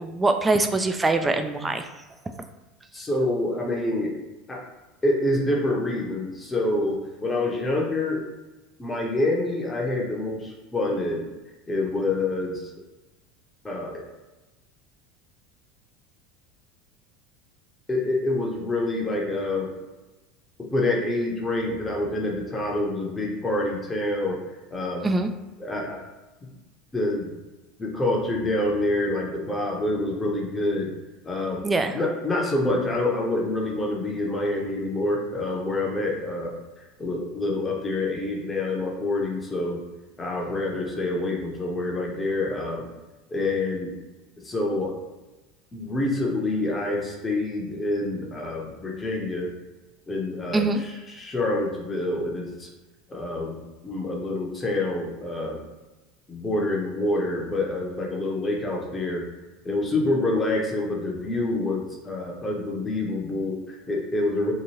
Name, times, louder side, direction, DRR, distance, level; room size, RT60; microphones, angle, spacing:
voice 1, 0.0-1.9 25.0-25.3 31.6-32.0 50.5-50.8, right 2 dB, 15° right, 7 dB, 0.3 m, -23 dB
voice 2, 2.9-4.1 4.5-4.6 5.0-8.2 8.8-11.3 11.7-12.7 13.6-14.0 17.9-19.7 20.6-24.4 24.7-25.1 25.6-26.0 26.9-27.3 27.8-30.9 31.2-31.6 31.9-39.8 40.2-42.9 43.3-43.9 44.4-44.9 45.7-49.5 50.1-52.7 53.1-55.6 56.3-59.2 59.6-64.5, left 2 dB, 15° left, -1 dB, 0.7 m, -27 dB
2.9 x 2.5 x 2.9 m, 1.1 s
figure-of-eight pair, 75°, 0 cm